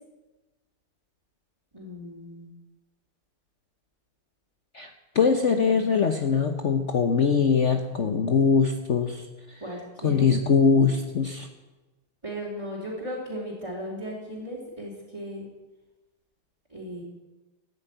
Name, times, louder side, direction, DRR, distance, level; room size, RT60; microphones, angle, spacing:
voice 1, 1.7-2.5 9.6-10.3 12.2-15.5 16.7-17.0, equal, 15° right, -6 dB, 3.6 m, -36 dB
voice 2, 5.1-9.6 10.0-11.5, left 5 dB, 50° left, 5 dB, 1.1 m, -22 dB
14.5 x 10.5 x 9.0 m, 1.1 s
omnidirectional pair, 1.9 m